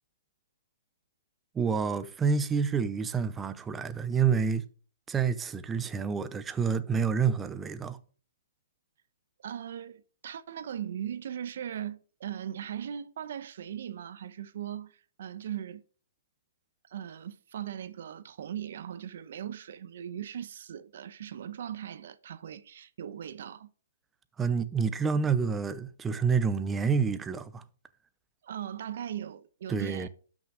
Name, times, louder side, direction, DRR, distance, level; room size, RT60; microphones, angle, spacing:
voice 1, 1.5-4.7 5.1-8.0 24.4-27.6 29.7-30.1, right 6 dB, 10° right, 0.6 m, -28 dB
voice 2, 9.4-15.8 16.9-23.7 28.4-30.1, right 9 dB, 55° right, 0.9 m, -39 dB
12.0 x 6.1 x 5.0 m
hypercardioid pair, 160°, 0 cm